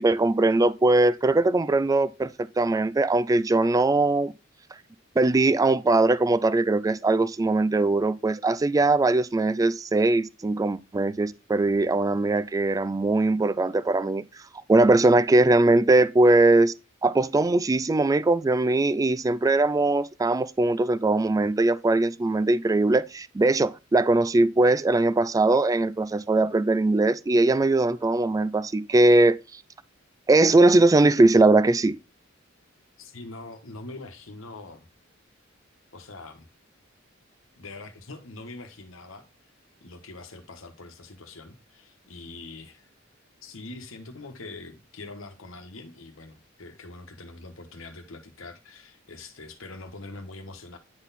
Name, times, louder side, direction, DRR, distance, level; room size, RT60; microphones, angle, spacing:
voice 1, 0.0-4.3 5.2-14.2 14.7-16.7 17.0-29.6 30.3-32.0, right 2 dB, 15° right, 0.3 m, -21 dB
voice 2, 33.0-34.9 35.9-36.5 37.5-39.2 39.8-42.9 43.4-50.8, left 2 dB, 75° left, 1.2 m, -43 dB
9.7 x 4.0 x 4.0 m
head